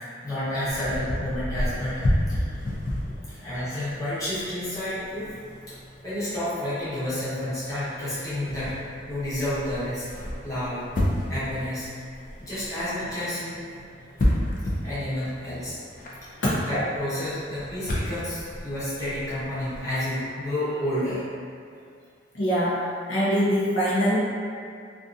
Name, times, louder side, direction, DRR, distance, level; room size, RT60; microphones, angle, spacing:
voice 1, 0.2-2.6 3.3-5.3 5.7-5.8 6.0-8.8 9.1-10.0 10.4-10.8 11.3-11.9 12.4-13.6 14.5-15.8 16.7-21.2, left 1 dB, 20° left, -13 dB, 0.9 m, -30 dB
sound 1, 0.7-20.0, left 1 dB, 45° left, 0.4 m, -32 dB
voice 2, 22.3-22.8 23.1-24.2, equal, 85° left, -9 dB, 0.7 m, -23 dB
2.6 x 2.5 x 2.4 m, 2.3 s
head